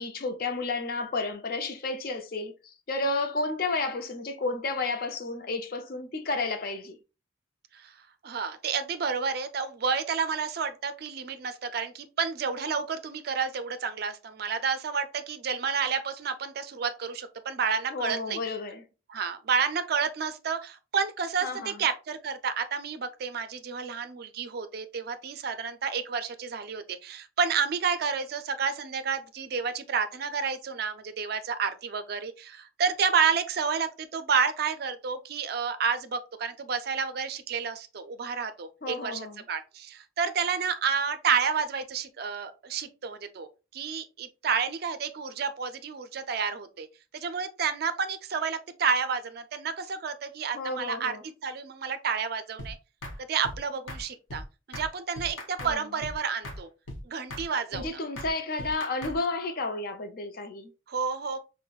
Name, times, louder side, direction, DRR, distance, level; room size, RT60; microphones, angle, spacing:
voice 1, 0.0-7.0 17.9-18.8 21.4-21.8 38.8-39.4 50.5-51.2 55.6-55.8 57.7-60.7, left 3 dB, 45° left, 0.5 m, -32 dB
voice 2, 8.2-18.4 19.1-43.5 43.7-46.9 47.1-51.1 51.4-52.8 53.3-54.4 54.7-56.7 57.0-58.0 60.9-61.4, right 6 dB, 50° right, 0.4 m, -30 dB
sound 1, 52.6-52.7 53.0-53.2 53.4-53.6 53.9-54.0 54.3-54.4 54.7-54.9 55.2-55.7 56.0-56.2 56.4-56.6 56.9-57.0 57.3-57.5 57.7-57.9 58.2-58.3 58.6-59.2, left 1 dB, 70° left, 0.8 m, -38 dB
5.5 x 2.1 x 2.3 m
head